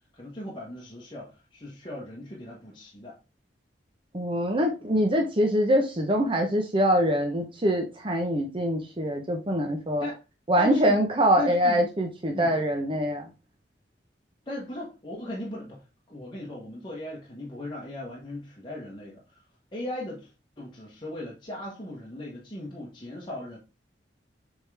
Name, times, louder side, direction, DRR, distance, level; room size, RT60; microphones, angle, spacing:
voice 1, 0.1-3.2 10.0-10.2 10.6-11.0 11.4-11.8 12.3-12.5 14.5-15.8 16.1-19.4 19.7-20.3 20.6-23.6, left 1 dB, 25° left, 1.4 m, -37 dB
voice 2, 4.1-10.1 10.5-13.3, equal, 30° right, 0.8 m, -24 dB
7.5 x 3.7 x 3.4 m
head